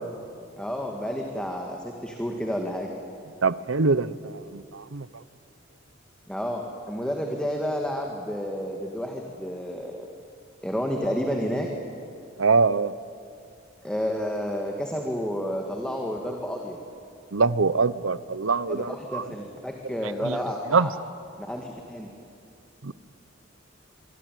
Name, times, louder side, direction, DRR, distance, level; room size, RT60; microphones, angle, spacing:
voice 1, 0.6-2.9 6.3-10.1 10.6-11.7 13.8-16.8 18.7-20.9 21.4-22.1, equal, 5° left, 1 dB, 1.9 m, -30 dB
voice 2, 3.4-4.1 4.9-5.0 12.4-12.9 17.3-18.8 20.7-20.9 22.9-23.0, right 4 dB, 80° right, 17 dB, 0.8 m, -22 dB
24.0 x 23.5 x 9.3 m, 2.5 s
head